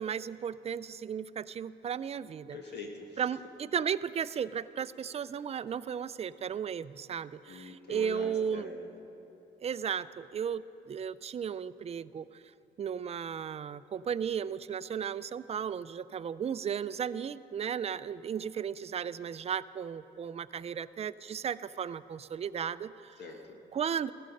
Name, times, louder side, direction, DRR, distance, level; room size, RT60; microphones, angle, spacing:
voice 1, 0.0-2.6 3.2-8.7 9.6-12.4 12.8-23.2 23.7-24.1, right 7 dB, 30° right, 16 dB, 0.4 m, -35 dB
voice 2, 2.5-3.2 7.5-8.9 23.2-23.6, left 2 dB, 60° left, 2 dB, 1.5 m, -44 dB
16.0 x 13.0 x 5.3 m, 3.0 s
cardioid pair, 90°, 20 cm